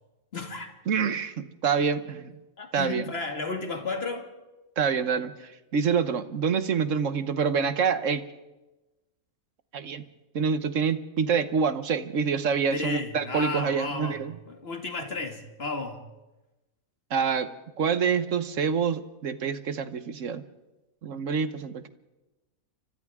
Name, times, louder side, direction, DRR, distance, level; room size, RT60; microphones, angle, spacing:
voice 1, 0.3-0.7 2.6-4.3 12.7-16.0, left 3 dB, 45° left, 4 dB, 2.5 m, -33 dB
voice 2, 0.9-2.3 2.7-3.0 4.8-8.2 9.7-10.0 10.3-14.3 17.1-17.5 17.8-20.4 21.0-21.9, right 6 dB, 60° right, 12 dB, 1.4 m, -26 dB
29.5 x 25.0 x 3.7 m, 1.1 s
omnidirectional pair, 1.5 m